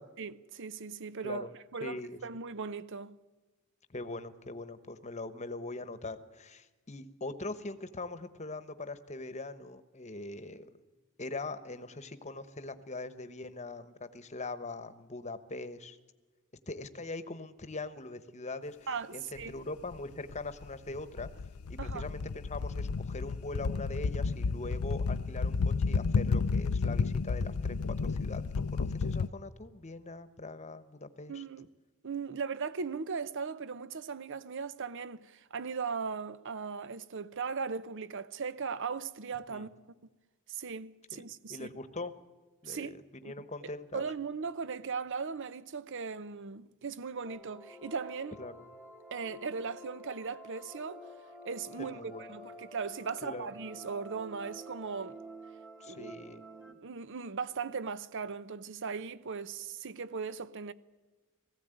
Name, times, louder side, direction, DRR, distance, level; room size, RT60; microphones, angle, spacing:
voice 1, 0.2-3.2 18.9-19.5 21.8-22.1 31.3-31.7 32.0-39.7 40.5-41.7 42.6-42.9 43.2-43.3 43.9-48.4 49.1-51.0 51.4-55.2 55.9-56.1 56.8-60.7, right 5 dB, 60° right, 0.7 m, -38 dB
voice 2, 1.8-2.2 3.9-10.7 11.2-16.0 16.7-18.8 19.1-21.3 21.7-31.4 39.5-39.7 41.1-41.2 41.5-42.1 42.6-44.0 48.4-48.5 51.8-52.4 53.2-53.5 55.8-56.4, left 2 dB, 30° left, 1.1 m, -42 dB
sound 1, 19.4-19.5 19.9-29.3, left 4 dB, 90° left, 0.5 m, -32 dB
sound 2, 47.3-56.7, right 1 dB, 5° right, 2.0 m, -49 dB
19.0 x 16.0 x 9.1 m
head